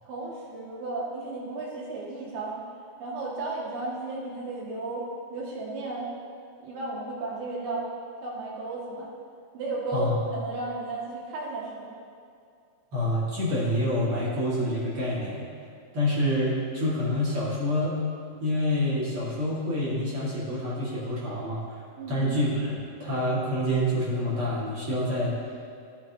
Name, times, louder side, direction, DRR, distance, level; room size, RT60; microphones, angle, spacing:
voice 1, 0.0-2.6 3.0-6.1 6.6-7.9 8.2-9.1 9.5-11.9 22.0-22.3, right 2 dB, 85° right, -5 dB, 3.7 m, -34 dB
voice 2, 12.9-15.5 15.9-18.0 18.4-21.6 22.1-25.3, left 1 dB, 45° right, -7 dB, 2.6 m, -27 dB
16.5 x 8.8 x 2.9 m, 2.4 s
omnidirectional pair, 3.8 m